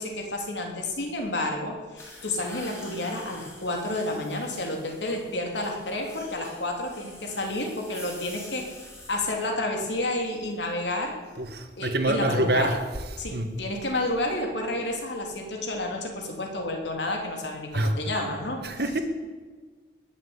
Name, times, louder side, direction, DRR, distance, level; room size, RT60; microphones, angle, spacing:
voice 1, 0.0-8.8 9.1-11.2 11.8-12.8 13.2-18.6, left 1 dB, 80° left, 2 dB, 3.0 m, -30 dB
sound 1, 2.0-9.5, left 1 dB, 15° left, 3.5 m, -47 dB
voice 2, 11.4-12.8 13.3-13.5 17.7-17.9 18.6-19.0, right 1 dB, 60° right, 7 dB, 1.6 m, -26 dB
20.5 x 7.9 x 8.0 m, 1.5 s
head